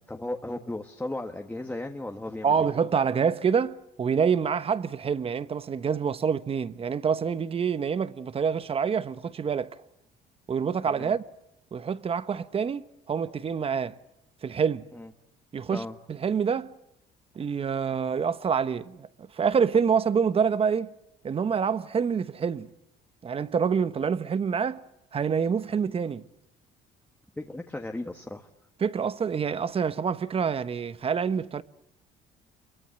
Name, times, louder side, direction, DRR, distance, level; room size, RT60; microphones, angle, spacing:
voice 1, 0.0-2.7 10.9-11.1 14.9-15.1 15.7-16.0 27.4-28.5, left 2 dB, 10° left, 1.6 m, -36 dB
voice 2, 2.4-9.8 10.5-11.2 11.7-14.0 14.4-14.9 15.5-16.7 17.3-20.9 21.2-22.7 23.2-24.8 25.1-26.2 28.8-31.6, right 6 dB, 35° right, 1.1 m, -27 dB
28.0 x 23.5 x 7.9 m
cardioid pair, 110°, 17 cm